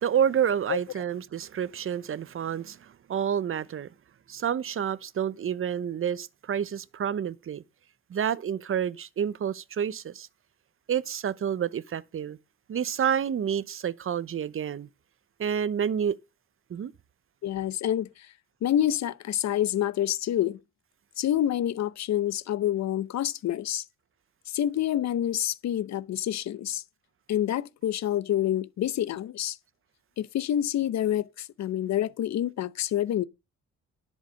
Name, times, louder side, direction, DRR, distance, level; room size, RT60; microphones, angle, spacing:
voice 1, 0.0-3.9 4.3-7.6 8.1-10.3 10.9-12.4 12.7-14.9 15.4-16.2 16.7-16.9, right 8 dB, 45° right, 0.8 m, -29 dB
voice 2, 17.4-18.3 18.6-20.6 21.2-23.8 24.5-26.8 27.3-29.6 30.2-33.2, left 11 dB, 65° left, 0.8 m, -27 dB
10.5 x 6.5 x 6.2 m
cardioid pair, 90°, 30 cm